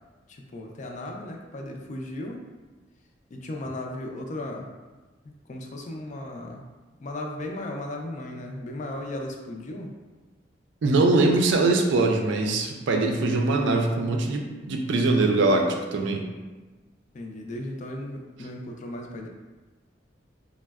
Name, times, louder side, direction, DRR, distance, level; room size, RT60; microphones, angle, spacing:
voice 1, 0.3-2.4 3.3-4.7 5.2-6.7 7.0-9.9 17.1-19.3, left 1 dB, 40° left, 2 dB, 0.4 m, -36 dB
voice 2, 10.8-15.7 15.9-16.2, right 2 dB, 75° right, 2 dB, 0.4 m, -22 dB
4.1 x 2.1 x 2.3 m, 1.2 s
head